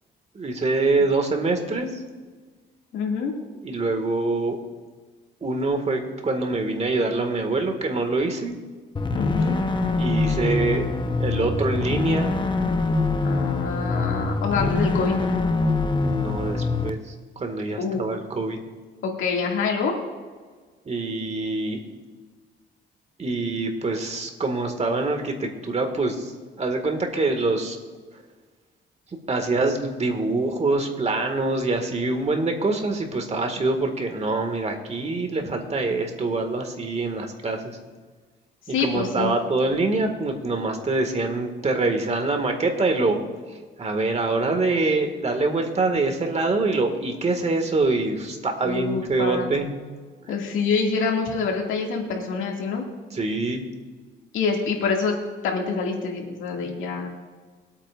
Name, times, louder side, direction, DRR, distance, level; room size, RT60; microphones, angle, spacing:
voice 1, 0.3-1.9 3.6-4.6 5.4-8.6 10.0-10.9 11.2-12.3 16.0-18.6 20.9-21.8 23.2-26.3 26.6-27.8 29.3-37.8 38.7-43.2 43.8-49.7 53.1-53.7 56.6-56.7, right 3 dB, 35° right, 4 dB, 2.0 m, -25 dB
voice 2, 2.9-3.3 9.1-9.6 13.2-15.2 17.8-18.0 19.0-19.9 38.7-39.3 48.6-49.5 50.3-52.8 54.3-55.1 55.4-57.1, left 5 dB, 80° left, 0 dB, 2.3 m, -26 dB
sound 1, 9.0-16.9, left 3 dB, 25° left, 0.9 m, -24 dB
21.5 x 8.8 x 2.5 m, 1.5 s
cardioid pair, 90°, 20 cm